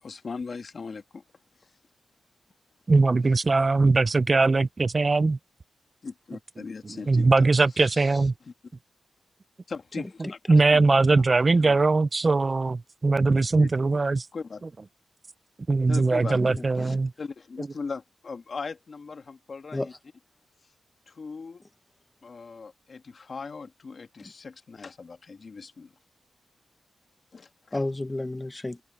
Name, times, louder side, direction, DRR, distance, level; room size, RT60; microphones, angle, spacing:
voice 1, 0.0-1.2 1.6-1.7 6.0-7.5 7.7-8.5 9.7-11.2 11.6-11.8 13.6-13.7 14.3-14.6 15.9-16.4 16.8-19.9 21.1-21.6 22.2-25.9 27.3-27.8, left 4 dB, 50° left, 2.0 m, -39 dB
voice 2, 2.9-5.4 7.1-8.3 10.5-14.3 15.7-17.1, right 3 dB, 35° right, 0.5 m, -21 dB
voice 3, 16.4-17.0 19.7-19.9 24.2-24.3 27.7-28.8, left 2 dB, 20° left, 1.0 m, -32 dB
wide cardioid pair, 100°, 0 cm